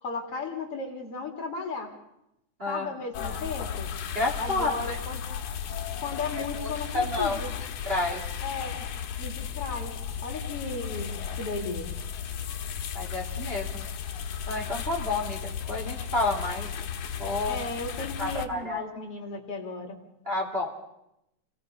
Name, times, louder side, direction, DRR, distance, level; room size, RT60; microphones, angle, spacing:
voice 1, 0.0-1.9 2.7-3.9 4.4-5.2 6.0-7.5 8.4-8.8 9.2-10.0 10.2-11.9 17.5-20.0, left 3 dB, 50° left, 2 dB, 3.5 m, -35 dB
voice 2, 2.6-3.0 3.2-3.4 4.1-5.0 6.3-7.4 7.8-8.3 12.9-13.8 14.5-16.7 17.2-17.6 18.2-18.8 20.2-20.8, left 2 dB, 20° right, 0 dB, 2.6 m, -30 dB
sound 1, 3.1-18.5, left 8 dB, 80° left, 2.7 m, -35 dB
28.5 x 20.5 x 5.6 m, 0.84 s
omnidirectional pair, 3.4 m